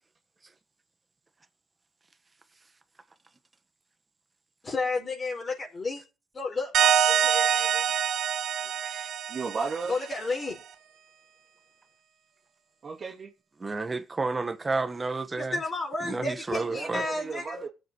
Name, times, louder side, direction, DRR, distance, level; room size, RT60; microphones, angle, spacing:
voice 1, 4.6-6.0 6.3-8.0 9.9-10.6 15.4-17.6, left 3 dB, 35° left, 4.8 m, -32 dB
sound 1, 6.7-10.2, right 9 dB, 75° right, 1.3 m, -25 dB
voice 2, 8.5-9.1 13.6-15.6 16.0-17.0, right 3 dB, 25° right, 1.4 m, -31 dB
voice 3, 9.3-9.9 12.8-13.3 16.7-17.7, right 4 dB, 45° right, 2.7 m, -34 dB
21.5 x 7.9 x 3.2 m
cardioid pair, 90°, 0 cm